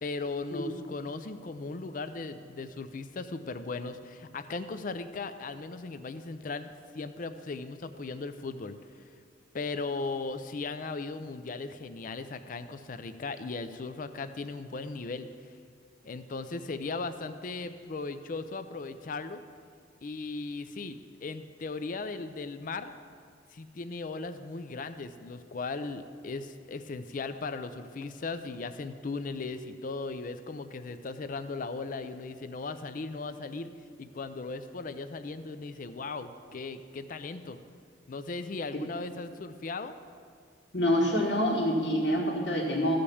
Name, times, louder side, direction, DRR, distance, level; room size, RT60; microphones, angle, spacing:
voice 1, 0.0-6.7 6.9-8.8 9.5-15.3 16.0-19.4 20.0-22.9 23.5-33.7 34.0-37.6 38.1-39.9, left 3 dB, 45° left, 10 dB, 0.4 m, -37 dB
voice 2, 40.7-42.9, equal, 75° left, -6 dB, 1.7 m, -26 dB
14.5 x 5.1 x 7.0 m, 2.1 s
head